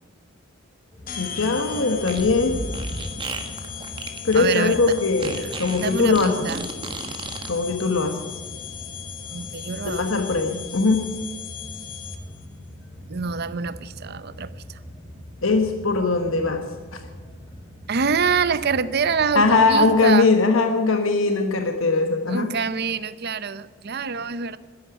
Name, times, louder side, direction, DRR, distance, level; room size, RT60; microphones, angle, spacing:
sound 1, 0.9-19.9, equal, 20° left, 5.2 m, -42 dB
sound 2, 1.1-12.5, left 8 dB, 40° left, 1.3 m, -37 dB
voice 1, 1.2-2.6 4.2-6.5 7.5-8.2 9.8-11.0 15.4-16.6 16.9-17.0 19.3-22.5, left 3 dB, 75° left, 5 dB, 1.3 m, -20 dB
Fart, 2.0-7.5, right 2 dB, 25° right, 1.4 m, -33 dB
voice 2, 4.3-4.8 5.4-5.5 5.7-6.7 9.3-10.2 13.1-14.8 17.9-20.3 22.3-24.6, right 5 dB, 50° right, 15 dB, 0.7 m, -26 dB
12.5 x 11.0 x 9.9 m, 1.5 s
head